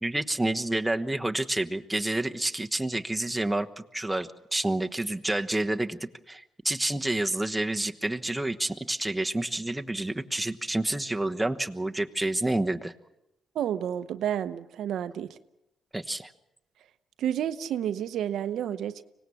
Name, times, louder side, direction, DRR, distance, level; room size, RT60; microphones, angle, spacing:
voice 1, 0.0-3.7 3.9-6.0 6.3-12.9 15.9-16.3, right 1 dB, 10° right, 5 dB, 1.2 m, -29 dB
voice 2, 13.5-15.4 17.2-19.0, right 10 dB, 75° right, 11 dB, 0.8 m, -30 dB
25.0 x 18.5 x 7.2 m, 0.89 s
cardioid pair, 90°, 0 cm